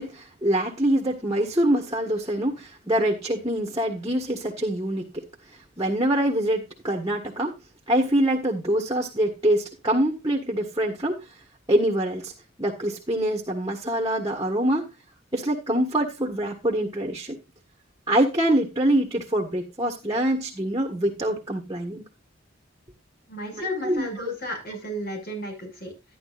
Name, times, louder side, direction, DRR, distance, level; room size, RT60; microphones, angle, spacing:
voice 1, 0.0-5.2 5.8-7.5 7.9-11.2 11.7-12.3 12.6-14.9 15.3-17.4 18.1-22.0 23.5-24.3, right 1 dB, 20° right, 2 dB, 1.6 m, -25 dB
voice 2, 23.3-25.9, left 1 dB, 50° left, 2 dB, 6.2 m, -33 dB
12.5 x 10.5 x 2.5 m, 0.25 s
head